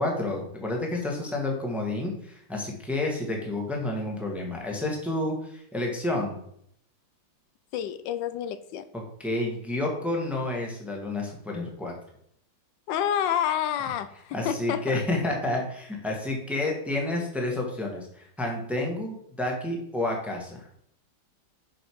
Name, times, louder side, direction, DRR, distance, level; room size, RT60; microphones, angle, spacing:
voice 1, 0.0-6.4 8.9-11.9 14.3-20.7, left 2 dB, ahead, 0 dB, 1.2 m, -30 dB
voice 2, 7.7-8.9 12.9-15.0, left 9 dB, 80° left, 12 dB, 1.2 m, -29 dB
6.4 x 5.3 x 4.6 m, 0.69 s
omnidirectional pair, 2.0 m